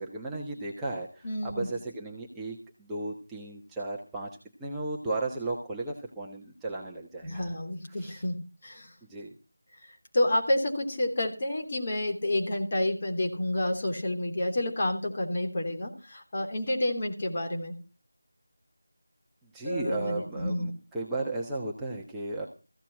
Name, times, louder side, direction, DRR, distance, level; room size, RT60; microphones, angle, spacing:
voice 1, 0.0-4.3 4.6-7.6 7.9-8.2 9.1-9.3 19.5-22.5, right 2 dB, 5° right, -5 dB, 1.3 m, -35 dB
voice 2, 1.2-1.7 7.2-8.9 9.8-17.7 19.6-20.7, left 1 dB, 35° left, 2 dB, 3.2 m, -29 dB
15.5 x 7.4 x 7.3 m, 0.33 s
figure-of-eight pair, 165°, 0 cm